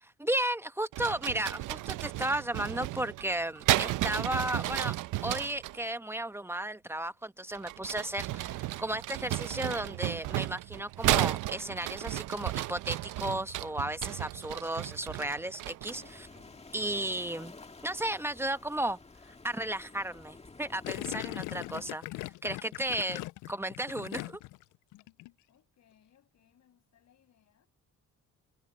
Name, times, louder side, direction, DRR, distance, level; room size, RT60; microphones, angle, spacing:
voice 1, 0.0-4.9 5.2-16.3 16.7-17.5 17.8-19.0 19.4-22.0 22.4-23.2 23.5-24.4, right 1 dB, 10° right, 1.1 m, -34 dB
sound 1, 0.9-5.8 7.5-16.1, right 16 dB, 90° right, 0.8 m, -33 dB
sound 2, 15.9-21.9, left 3 dB, 20° left, 1.8 m, -51 dB
Gurgling, 20.8-24.6 24.9-25.3, left 19 dB, 90° left, 0.5 m, -39 dB
voice 2, 25.5-27.7, left 10 dB, 65° left, 6.8 m, -67 dB
cardioid pair, 90°, 30 cm